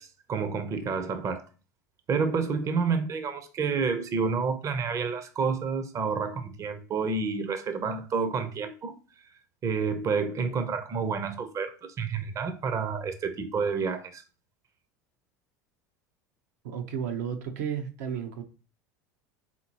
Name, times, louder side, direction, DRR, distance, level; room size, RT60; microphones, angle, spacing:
voice 1, 0.0-1.5 2.1-9.0 9.6-14.2, right 5 dB, 35° right, 0.7 m, -29 dB
voice 2, 16.6-18.4, right 8 dB, 75° right, 0.8 m, -33 dB
4.2 x 3.8 x 2.9 m
hypercardioid pair, 85°, 9 cm